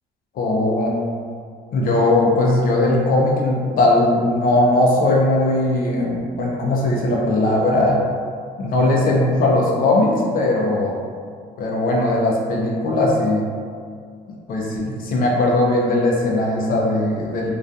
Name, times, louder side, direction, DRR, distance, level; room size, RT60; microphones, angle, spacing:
voice 1, 0.3-0.9 1.7-8.0 8.6-10.9 11.6-13.4 14.5-17.5, left 2 dB, 60° left, -2 dB, 0.5 m, -19 dB
2.3 x 2.2 x 2.6 m, 2.1 s
cardioid pair, 110°, 17 cm